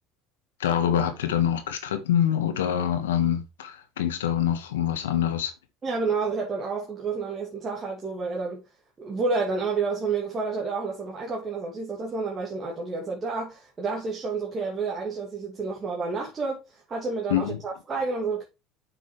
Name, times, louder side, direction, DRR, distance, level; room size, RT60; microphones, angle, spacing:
voice 1, 0.6-5.5 17.3-17.6, left 10 dB, 90° left, 1.5 m, -25 dB
voice 2, 5.8-8.6 9.0-18.4, right 4 dB, 30° right, 2.5 m, -30 dB
7.4 x 6.1 x 3.2 m
hypercardioid pair, 85°, 0 cm